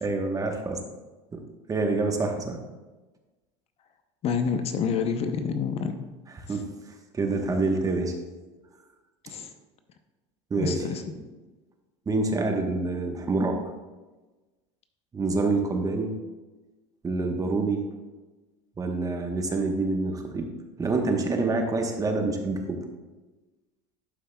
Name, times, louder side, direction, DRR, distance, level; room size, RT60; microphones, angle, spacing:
voice 1, 0.0-0.8 1.3-1.4 1.7-2.6 6.5-6.7 7.1-8.1 10.5-10.8 12.1-13.6 15.1-16.2 17.0-17.8 18.8-20.5 20.8-22.8, right 3 dB, 20° right, 4 dB, 1.0 m, -26 dB
voice 2, 4.2-5.9 6.5-6.6 9.3-9.5 10.6-11.0, left 6 dB, 40° left, 8 dB, 0.6 m, -28 dB
11.5 x 5.4 x 2.2 m, 1.2 s
supercardioid pair, 105°, 16 cm